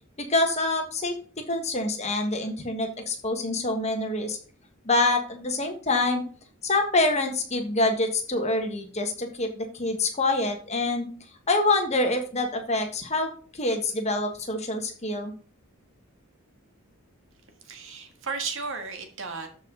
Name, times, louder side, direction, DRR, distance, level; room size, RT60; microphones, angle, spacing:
voice 1, 0.2-4.4 4.9-6.2 6.6-11.1 11.5-15.3, left 2 dB, 30° left, 4 dB, 1.6 m, -26 dB
voice 2, 17.6-19.5, right 4 dB, 65° right, 6 dB, 1.7 m, -34 dB
13.0 x 4.9 x 3.9 m, 0.41 s
head